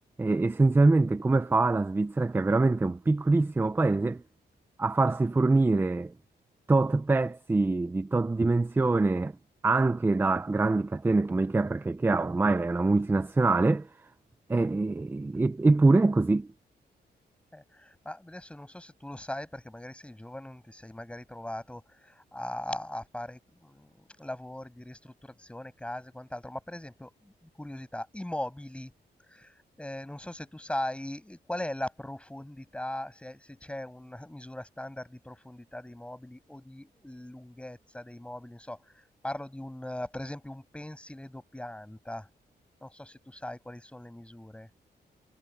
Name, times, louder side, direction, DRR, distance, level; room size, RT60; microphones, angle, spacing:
voice 1, 0.2-4.2 4.8-6.1 6.7-9.3 9.6-13.9 14.5-16.5, right 3 dB, 10° right, 0.4 m, -24 dB
voice 2, 17.5-28.9 29.2-42.3 42.8-44.7, left 1 dB, 5° left, 7.5 m, -40 dB
wide cardioid pair, 170°, 17 cm